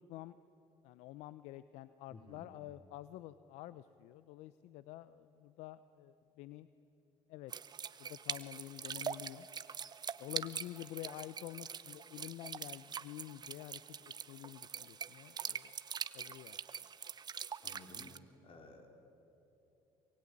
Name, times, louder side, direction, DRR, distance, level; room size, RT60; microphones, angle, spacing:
voice 1, 0.8-6.7 7.3-7.5 8.0-9.5 10.2-15.7 16.1-16.6, left 15 dB, 75° left, 15 dB, 0.7 m, -49 dB
voice 2, 2.1-2.4 17.6-18.1 18.4-18.9, left 3 dB, 50° left, 4 dB, 4.8 m, -55 dB
sound 1, 7.5-18.2, right 7 dB, 35° right, 1.0 m, -44 dB
24.0 x 23.5 x 9.9 m, 2.9 s
supercardioid pair, 80°, 12 cm